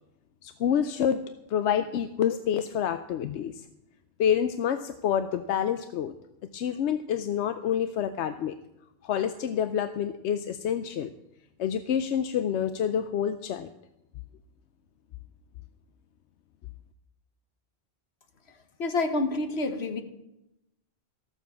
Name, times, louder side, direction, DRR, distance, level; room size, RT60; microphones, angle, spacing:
voice 1, 0.4-1.2 1.5-3.6 4.2-6.1 6.5-8.6 9.0-11.1 11.6-13.7, left 9 dB, 90° left, 10 dB, 0.9 m, -27 dB
voice 2, 18.8-20.0, left 2 dB, 70° left, 7 dB, 1.5 m, -28 dB
14.0 x 7.2 x 7.0 m, 0.90 s
omnidirectional pair, 1.1 m